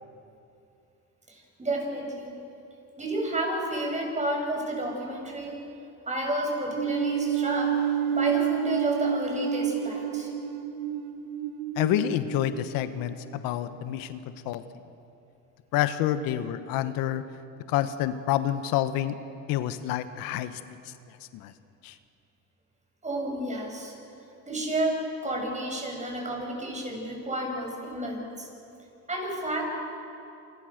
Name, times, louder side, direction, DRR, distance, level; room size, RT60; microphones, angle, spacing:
voice 1, 1.3-2.3 3.0-5.6 6.1-7.7 8.1-10.3 23.0-23.9 24.5-28.5 29.1-29.7, right 1 dB, 20° right, 0 dB, 7.5 m, -31 dB
sound 1, 6.8-13.2, right 8 dB, 90° right, 1.3 m, -29 dB
voice 2, 11.8-14.6 15.7-17.2 17.7-19.2 19.5-20.6 21.3-21.5 21.8-21.9, left 12 dB, 80° left, 11 dB, 1.3 m, -28 dB
28.0 x 25.5 x 6.6 m, 2.8 s
cardioid pair, 100°, 34 cm